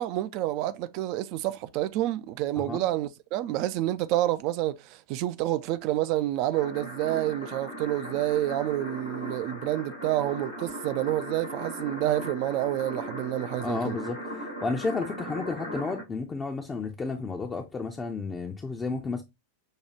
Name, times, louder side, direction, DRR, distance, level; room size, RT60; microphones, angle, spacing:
voice 1, 0.0-14.0, right 14 dB, 45° right, 0.4 m, -28 dB
sound 1, 6.5-16.0, equal, 80° left, 2.3 m, -38 dB
voice 2, 13.6-19.2, left 4 dB, 15° left, 0.5 m, -32 dB
6.4 x 2.3 x 2.8 m
figure-of-eight pair, 90°, 0 cm